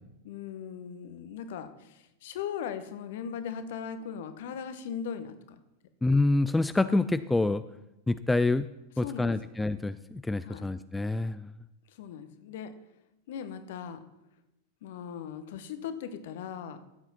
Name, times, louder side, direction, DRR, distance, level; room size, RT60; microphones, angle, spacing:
voice 1, 0.2-5.3 9.0-9.3 10.4-10.7 12.0-12.7 13.3-14.0 14.8-16.8, left 7 dB, 55° left, 10 dB, 1.0 m, -38 dB
voice 2, 6.0-7.6 8.1-8.7 9.0-11.5, left 2 dB, 5° left, 13 dB, 0.3 m, -27 dB
14.5 x 8.0 x 4.2 m, 0.89 s
figure-of-eight pair, 90°, 0 cm